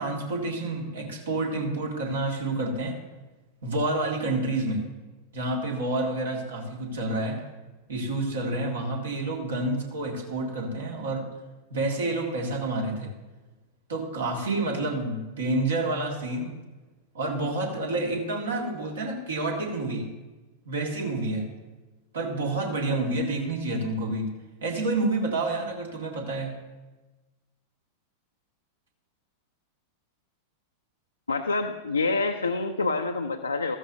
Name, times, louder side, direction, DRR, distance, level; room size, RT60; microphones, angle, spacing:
voice 1, 0.0-3.0 3.6-4.8 5.3-7.4 7.9-11.3 11.7-13.1 13.9-16.6 17.1-20.1 20.7-21.5 22.1-24.3 24.6-26.5, right 2 dB, 65° right, 1 dB, 2.0 m, -29 dB
voice 2, 31.3-33.8, left 3 dB, 80° left, 3 dB, 0.6 m, -27 dB
14.0 x 13.5 x 2.7 m, 1.2 s
figure-of-eight pair, 90°, 0 cm